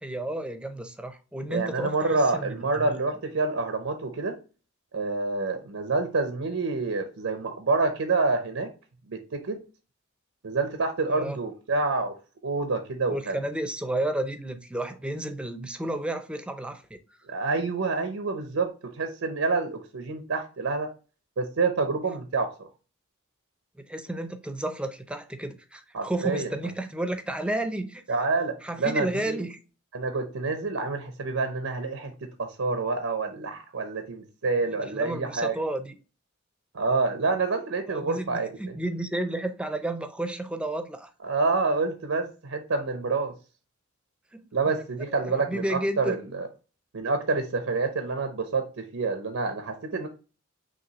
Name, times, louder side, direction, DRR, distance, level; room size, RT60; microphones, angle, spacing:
voice 1, 0.0-3.0 11.1-11.4 13.1-17.0 23.8-28.0 28.6-29.6 34.8-36.0 37.9-41.1 44.3-44.5 45.1-46.1, right 1 dB, 5° right, 0.5 m, -32 dB
voice 2, 1.5-4.4 4.9-8.7 9.1-9.6 10.4-12.1 12.4-13.4 17.3-20.9 21.4-22.7 25.9-26.5 28.1-29.4 29.9-35.6 36.7-38.8 41.2-43.3 44.5-46.5 46.9-50.1, right 3 dB, 90° right, 0.7 m, -27 dB
5.8 x 2.7 x 2.9 m
head